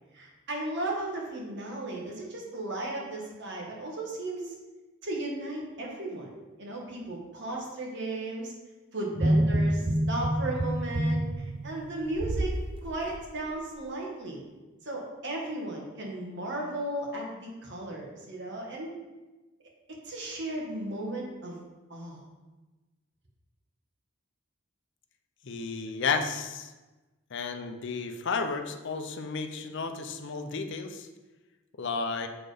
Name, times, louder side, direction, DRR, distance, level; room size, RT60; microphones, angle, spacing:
voice 1, 0.1-4.5 5.0-6.3 6.6-8.5 8.9-14.4 14.8-18.9 20.0-21.6 21.9-22.2, right 1 dB, 55° right, -1 dB, 1.6 m, -35 dB
sound 1, 9.1-12.6 13.0-13.2, right 1 dB, 25° right, 0.6 m, -27 dB
voice 2, 25.4-26.7 27.3-31.1 31.8-32.3, left 4 dB, 60° left, 6 dB, 0.7 m, -32 dB
7.6 x 4.5 x 5.0 m, 1.2 s
head